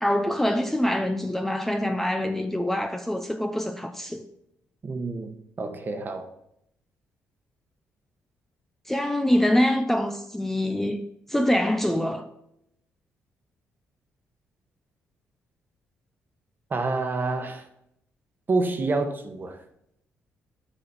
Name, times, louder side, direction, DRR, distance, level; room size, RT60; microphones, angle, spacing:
voice 1, 0.0-4.3 8.9-12.3, left 1 dB, 5° left, 0.6 m, -25 dB
voice 2, 4.8-6.3 16.7-17.6 18.5-19.6, right 3 dB, 40° right, 1.1 m, -28 dB
7.1 x 5.0 x 4.1 m
cardioid pair, 75°, 5 cm